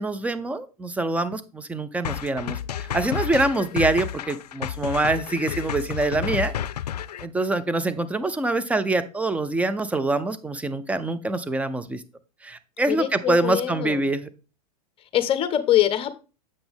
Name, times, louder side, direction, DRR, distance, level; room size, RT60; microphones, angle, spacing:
voice 1, 0.0-6.5 7.2-12.0 12.4-14.3, right 2 dB, 5° right, 12 dB, 0.5 m, -25 dB
sound 1, 2.0-7.3, left 10 dB, 85° left, 0.4 m, -31 dB
voice 2, 12.9-14.1 15.1-16.1, left 12 dB, 25° left, 12 dB, 0.9 m, -23 dB
7.8 x 5.9 x 3.5 m, 0.32 s
hypercardioid pair, 105°, 20 cm